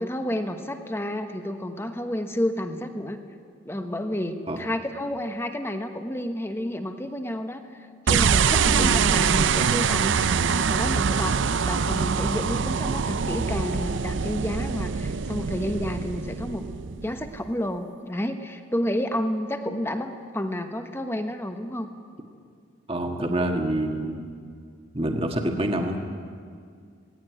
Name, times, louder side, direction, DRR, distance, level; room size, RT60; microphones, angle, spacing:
voice 1, 0.0-3.2 3.6-7.8 8.1-10.2 10.5-16.7 17.0-21.9, left 1 dB, 10° left, 6 dB, 1.2 m, -30 dB
sound 1, 8.1-17.5, right 6 dB, 70° right, 0.6 m, -24 dB
voice 2, 22.9-24.2 24.9-26.0, right 1 dB, 30° right, 3 dB, 1.7 m, -26 dB
18.0 x 17.5 x 10.0 m, 2.2 s
head